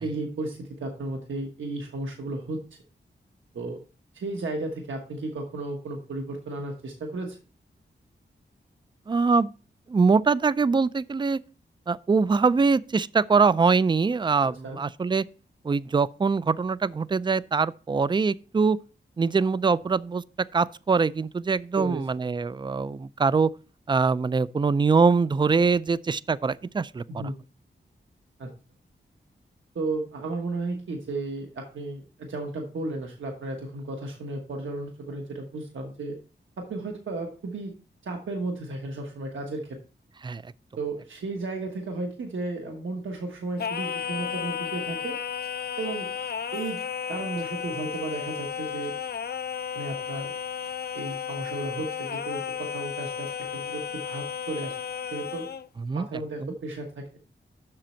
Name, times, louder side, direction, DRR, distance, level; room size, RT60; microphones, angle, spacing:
voice 1, 0.0-2.6 3.5-3.8 4.1-7.4 14.6-14.8 21.8-22.0 27.1-27.4 28.4-28.5 29.7-36.2 36.6-37.7 38.0-39.8 40.8-45.2 45.8-46.1 46.5-46.8 47.1-48.9 49.7-50.3 50.9-54.8 55.1-55.5 55.9-57.0, right 2 dB, 85° right, 1.3 m, -34 dB
voice 2, 9.1-9.5 9.9-11.4 11.9-15.2 15.6-18.8 19.2-20.2 20.5-23.5 23.9-27.0 40.2-40.5 55.8-56.1 56.4-56.5, right 4 dB, 25° right, 0.3 m, -23 dB
Singing, 43.6-55.7, left 8 dB, 55° left, 0.5 m, -33 dB
7.6 x 6.1 x 4.3 m
wide cardioid pair, 80°, 20 cm